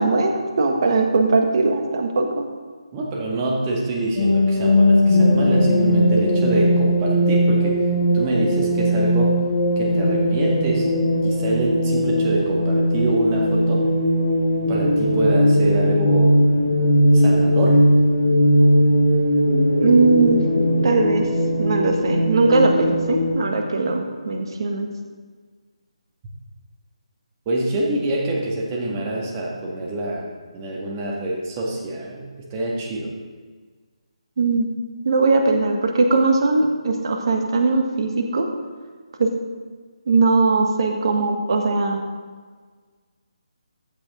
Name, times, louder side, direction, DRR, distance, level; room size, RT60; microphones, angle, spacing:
voice 1, 0.0-2.5 19.8-20.4 20.8-21.3 21.6-24.9 34.4-34.7 35.0-38.5 39.2-39.3 40.1-42.0, right 3 dB, 45° right, 3 dB, 1.6 m, -19 dB
voice 2, 2.9-7.8 8.1-9.4 9.8-10.9 11.2-13.9 14.7-16.4 17.1-17.8 27.5-33.1, right 1 dB, 20° right, -2 dB, 1.9 m, -25 dB
sound 1, 4.2-23.3, equal, 35° left, 1.8 m, -18 dB
14.5 x 8.4 x 3.8 m, 1.5 s
figure-of-eight pair, 150°, 3 cm